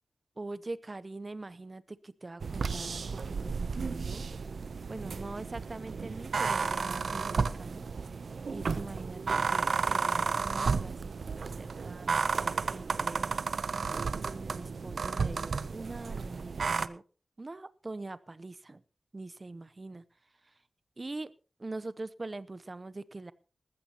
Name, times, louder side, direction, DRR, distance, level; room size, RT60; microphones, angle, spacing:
voice 1, 0.4-4.3 4.9-7.9 8.5-13.4 14.2-17.0 17.4-18.8 19.1-20.0 21.0-21.3 21.6-23.3, right 2 dB, 35° right, 17 dB, 0.7 m, -43 dB
sound 1, 2.4-16.9, right 5 dB, 75° right, 0.6 m, -32 dB
19.5 x 14.5 x 2.9 m, 0.35 s
wide cardioid pair, 115°, 0 cm